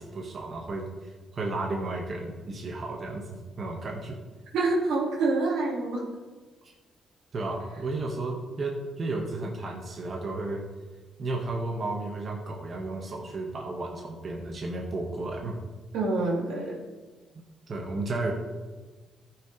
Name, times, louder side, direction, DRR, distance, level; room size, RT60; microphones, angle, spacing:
voice 1, 0.0-3.2 3.6-4.2 6.6-6.7 7.3-10.6 11.2-15.6 17.7-18.3, right 2 dB, 45° right, 0 dB, 1.6 m, -33 dB
voice 2, 4.5-6.0 15.9-16.8, right 3 dB, 85° right, -2 dB, 2.4 m, -26 dB
14.5 x 6.2 x 3.4 m, 1.3 s
cardioid pair, 90°, 0 cm